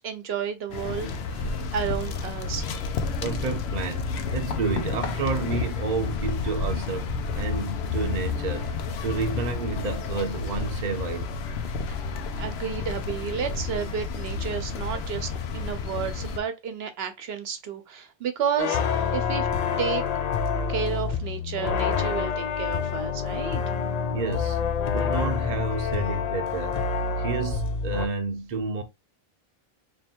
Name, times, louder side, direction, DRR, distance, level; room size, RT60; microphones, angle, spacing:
voice 1, 0.0-2.7 11.9-12.0 12.4-18.8 19.1-19.5 19.8-20.0 20.7-23.6, right 7 dB, 75° right, 0.9 m, -31 dB
sound 1, 0.7-16.4, left 5 dB, 85° left, 0.9 m, -30 dB
voice 2, 3.2-11.3 24.1-24.6 24.9-26.8 27.2-28.8, right 4 dB, 45° right, 0.8 m, -30 dB
sound 2, 18.6-28.1, left 6 dB, 55° left, 0.5 m, -27 dB
3.1 x 2.8 x 4.3 m
omnidirectional pair, 1.0 m